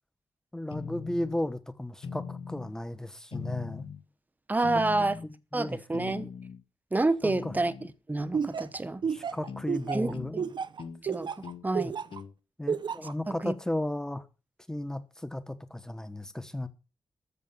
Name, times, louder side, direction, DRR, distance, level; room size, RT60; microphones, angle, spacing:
voice 1, 0.5-3.9 5.2-5.8 7.2-7.5 9.1-10.5 11.7-11.9 12.6-14.2 14.7-16.7, left 1 dB, 5° left, 1.2 m, -35 dB
sound 1, 0.7-1.4 2.0-2.7 3.3-4.0 4.6-5.3 5.9-6.6 7.3-7.9 9.5-9.7 10.1-10.4 10.8-11.0 11.4-11.7 12.1-12.3, left 5 dB, 70° left, 1.5 m, -40 dB
voice 2, 4.5-5.2 5.5-6.3 6.9-7.7 8.1-9.0 9.9-10.1 10.4-10.5 11.0-11.3 11.6-11.9 13.3-13.5, right 2 dB, 20° right, 1.0 m, -28 dB
Laughter, 8.3-12.2 12.7-13.1, right 6 dB, 55° right, 0.8 m, -31 dB
13.5 x 7.1 x 7.0 m
wide cardioid pair, 130°, 9 cm